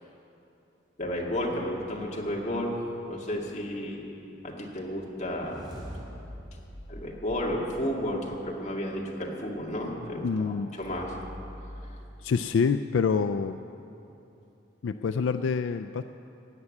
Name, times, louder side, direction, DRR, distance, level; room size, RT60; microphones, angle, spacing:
voice 1, 1.0-2.7 3.1-4.1 4.4-5.7 6.9-11.1, equal, 35° left, -2 dB, 2.1 m, -32 dB
sound 1, 5.1-8.3, equal, 25° right, 3.3 m, -44 dB
voice 2, 10.2-10.7 12.2-13.6 14.8-16.0, left 5 dB, 75° left, 9 dB, 0.4 m, -26 dB
16.0 x 7.2 x 9.7 m, 2.8 s
head